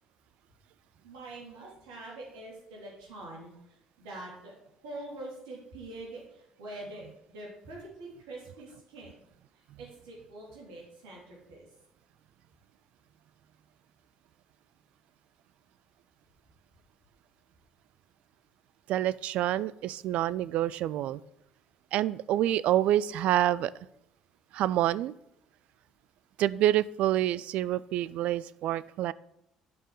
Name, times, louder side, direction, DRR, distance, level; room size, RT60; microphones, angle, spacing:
voice 1, 1.0-4.5 4.8-9.2 9.5-11.7, right 2 dB, 85° right, -4 dB, 3.4 m, -45 dB
voice 2, 18.9-21.2 21.9-23.7 24.5-25.1 26.4-29.1, right 13 dB, 65° right, 18 dB, 0.4 m, -27 dB
9.4 x 5.4 x 6.5 m, 0.79 s
hypercardioid pair, 60°, 2 cm